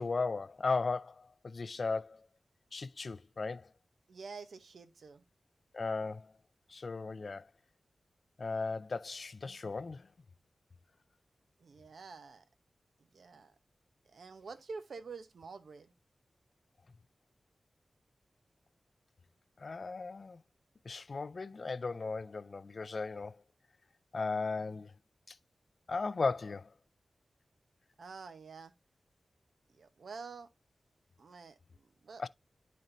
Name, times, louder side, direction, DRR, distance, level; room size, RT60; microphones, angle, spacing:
voice 1, 0.0-2.3 2.7-3.7 5.7-6.3 6.7-7.5 8.4-10.1 19.6-20.4 20.9-23.4 24.1-24.9 25.3-25.4 25.9-26.7 32.2-32.3, left 4 dB, 55° left, 0.3 m, -36 dB
voice 2, 4.1-5.2 11.6-12.4 13.1-13.5 14.1-15.9 28.0-28.7 29.7-30.5 31.2-32.2, right 4 dB, 85° right, 0.8 m, -48 dB
10.5 x 4.2 x 2.5 m
wide cardioid pair, 95°, 0 cm